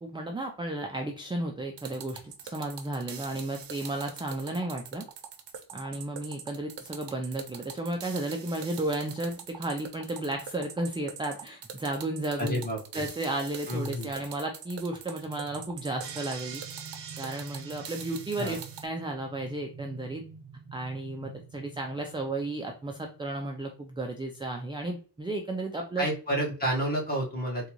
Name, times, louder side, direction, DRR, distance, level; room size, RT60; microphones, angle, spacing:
voice 1, 0.0-5.1 5.7-12.7 12.9-16.6 17.2-20.2 20.7-26.1, right 2 dB, 15° right, 2 dB, 0.3 m, -33 dB
sound 1, 1.8-18.9, right 7 dB, 90° right, 0.7 m, -43 dB
voice 2, 12.4-13.0 13.7-14.1 18.4-18.6 26.0-27.7, equal, 20° left, -1 dB, 1.2 m, -30 dB
sound 2, 15.2-23.4, right 5 dB, 30° right, 0.7 m, -49 dB
3.7 x 2.3 x 2.9 m, 0.39 s
wide cardioid pair, 145°, 41 cm